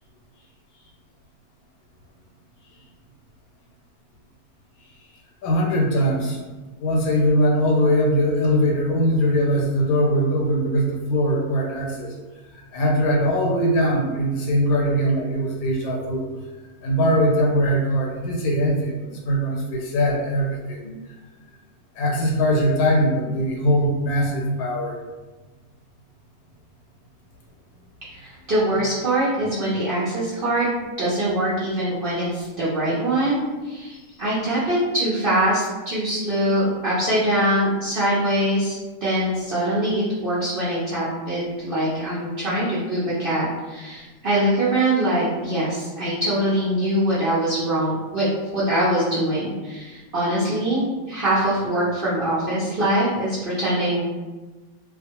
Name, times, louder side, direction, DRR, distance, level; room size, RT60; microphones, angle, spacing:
voice 1, 5.4-6.4 6.8-12.1 12.5-16.2 16.8-20.9 22.0-24.9 37.6-37.7, equal, 80° left, -1 dB, 1.1 m, -21 dB
voice 2, 28.2-30.7 31.0-48.3 48.5-54.0, right 1 dB, 60° right, -9 dB, 0.6 m, -23 dB
2.4 x 2.2 x 2.8 m, 1.2 s
omnidirectional pair, 1.5 m